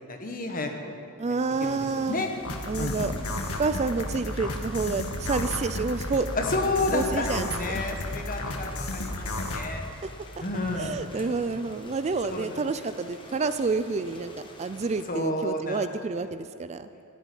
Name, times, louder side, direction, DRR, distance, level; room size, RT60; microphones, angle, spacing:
voice 1, 0.1-0.9 1.6-2.3 2.8-3.1 6.3-9.8 10.4-11.3 12.3-12.6 15.1-15.8, left 2 dB, 40° left, 3 dB, 1.6 m, -31 dB
voice 2, 1.2-2.2 2.7-3.1 3.6-6.3 6.9-7.9 10.0-10.1 10.8-14.3 14.6-16.9, right 4 dB, 30° right, 11 dB, 0.4 m, -29 dB
Thunder / Rain, 1.5-15.0, left 1 dB, 25° left, 1.4 m, -45 dB
sound 1, 2.4-9.7, left 1 dB, 80° left, 1.6 m, -33 dB
14.0 x 8.4 x 10.0 m, 2.5 s
head